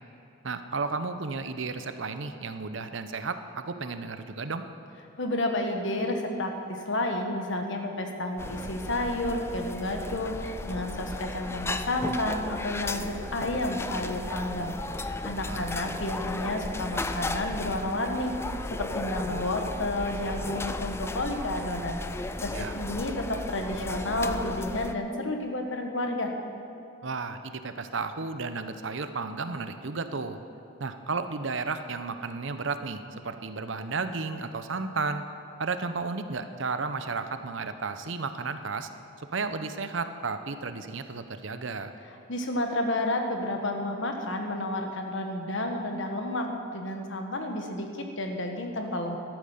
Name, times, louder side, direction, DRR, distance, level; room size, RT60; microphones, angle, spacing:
voice 1, 0.4-4.6 15.4-15.7 22.5-22.7 27.0-30.4 30.8-35.2 35.6-38.9 39.2-41.9, right 4 dB, 60° right, 9 dB, 0.7 m, -33 dB
voice 2, 5.2-26.3 42.3-46.5 46.7-49.2, left 1 dB, 60° left, 4 dB, 1.5 m, -31 dB
sound 1, 8.4-24.9, left 2 dB, 10° left, 0.3 m, -35 dB
13.5 x 12.0 x 5.7 m, 2.8 s
head